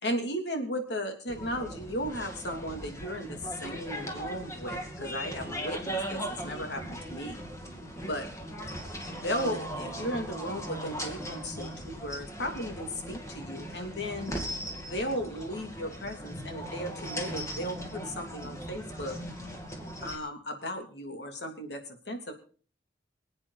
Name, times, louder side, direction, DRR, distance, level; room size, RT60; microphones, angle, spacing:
voice 1, 0.0-7.4 8.0-8.3 9.1-14.3 14.7-19.2 20.0-22.3, equal, 65° left, 4 dB, 3.2 m, -36 dB
sound 1, 1.3-20.2, equal, 15° left, 2.6 m, -38 dB
26.0 x 8.8 x 4.2 m, 0.42 s
head